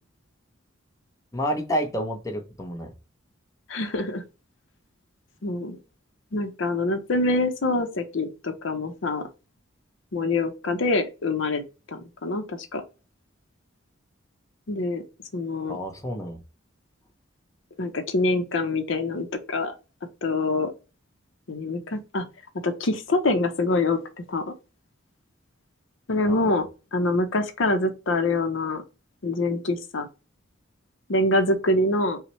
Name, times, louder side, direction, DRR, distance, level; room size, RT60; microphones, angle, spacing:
voice 1, 1.3-2.9 15.7-16.4 26.3-26.6, equal, 15° left, 0.7 m, -29 dB
voice 2, 3.7-4.2 5.4-5.8 6.3-9.2 10.1-11.6 11.9-12.8 14.7-15.0 15.3-15.8 17.8-19.7 20.2-20.7 21.5-22.3 22.6-24.0 24.3-24.4 26.1-28.8 29.2-30.1 31.1-32.2, left 2 dB, 65° left, 0.6 m, -25 dB
5.7 x 2.1 x 3.0 m
head